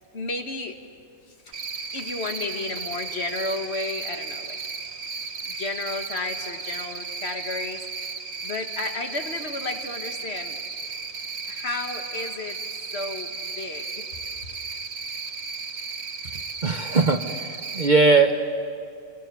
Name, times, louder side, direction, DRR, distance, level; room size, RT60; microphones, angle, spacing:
voice 1, 0.1-0.8 1.5-1.6 1.9-4.6 5.5-7.8 8.4-10.6 11.5-12.7 12.9-14.1, left 2 dB, 50° left, 5 dB, 1.8 m, -32 dB
Cricket, 1.5-17.9, right 4 dB, 70° right, 1.6 m, -35 dB
voice 2, 16.6-17.5 17.7-18.4, right 3 dB, 40° right, 6 dB, 0.9 m, -19 dB
29.5 x 22.5 x 6.9 m, 2.4 s
omnidirectional pair, 1.5 m